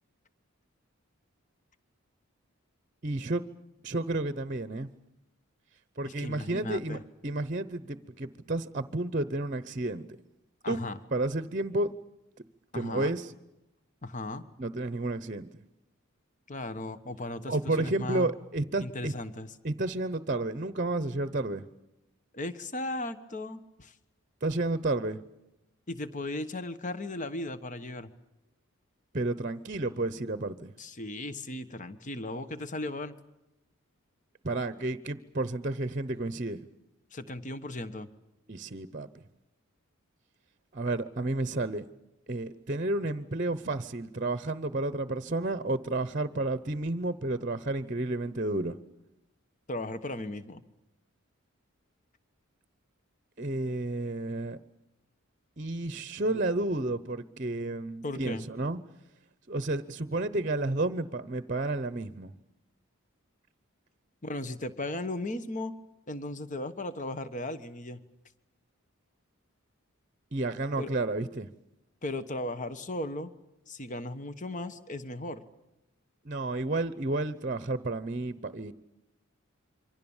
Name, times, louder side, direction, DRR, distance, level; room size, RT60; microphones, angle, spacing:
voice 1, 3.0-3.4 3.8-4.9 6.0-10.1 10.7-10.8 11.1-11.9 12.7-13.3 14.6-15.5 17.5-19.1 19.6-21.6 24.4-25.2 29.1-30.7 34.4-36.6 38.5-39.1 40.7-41.8 42.3-48.8 53.4-54.6 55.6-58.8 59.5-62.3 70.3-71.5 76.2-78.7, right 2 dB, 35° right, 14 dB, 0.8 m, -31 dB
voice 2, 6.0-7.0 10.6-11.0 12.7-13.1 14.0-14.4 16.5-18.3 18.8-19.5 22.3-23.9 25.9-28.1 30.8-33.1 37.1-38.1 49.7-50.6 58.0-58.4 64.2-65.7 66.1-68.0 70.8-70.9 72.0-73.3 73.7-75.4, left 2 dB, 35° left, 12 dB, 1.3 m, -36 dB
27.0 x 24.5 x 7.2 m, 0.92 s
head